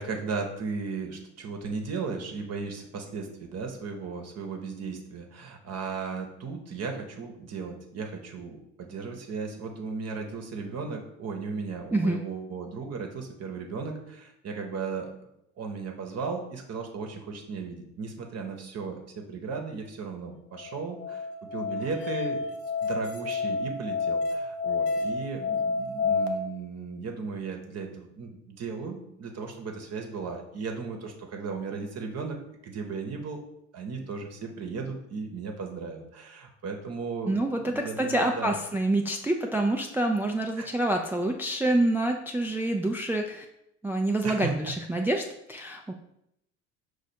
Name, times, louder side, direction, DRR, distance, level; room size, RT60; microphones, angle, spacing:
voice 1, 0.0-15.3 15.6-22.4 22.8-32.4 32.6-33.4 33.7-38.5 40.6-40.7 44.2-44.7, right 4 dB, 50° right, 3 dB, 0.9 m, -36 dB
Musical instrument, 20.6-26.3, left 4 dB, 80° left, 0.6 m, -29 dB
voice 2, 37.3-43.4 43.8-45.9, right 1 dB, 5° right, 2 dB, 0.3 m, -27 dB
5.0 x 2.4 x 4.2 m, 0.79 s
hypercardioid pair, 65°, 34 cm